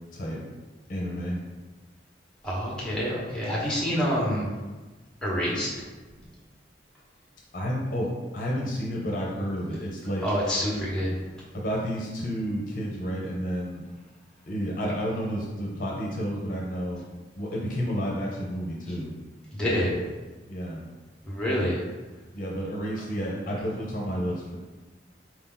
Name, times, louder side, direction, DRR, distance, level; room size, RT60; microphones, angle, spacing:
voice 1, 0.9-1.4 7.5-10.2 11.5-13.8 14.5-17.0 17.4-19.1 20.5-20.8 22.3-24.6, equal, 50° left, -3 dB, 0.7 m, -30 dB
voice 2, 2.4-4.4 5.2-5.8 10.2-11.1 19.5-19.9 21.3-21.8, equal, 5° left, -6 dB, 1.1 m, -27 dB
4.4 x 2.8 x 3.8 m, 1.2 s
head